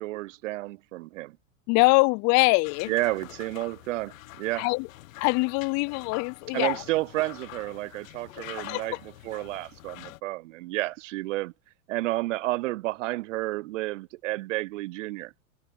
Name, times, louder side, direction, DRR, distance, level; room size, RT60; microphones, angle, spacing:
voice 1, 0.0-1.3 2.9-4.7 6.5-9.0 9.2-11.5 11.9-15.3, right 18 dB, 55° right, 0.6 m, -31 dB
voice 2, 1.7-2.9 4.5-4.9 5.2-6.8 8.6-9.0, left 29 dB, 40° left, 0.7 m, -23 dB
sound 1, 2.6-10.2, left 16 dB, 65° left, 1.6 m, -45 dB
hypercardioid pair, 95°, 44 cm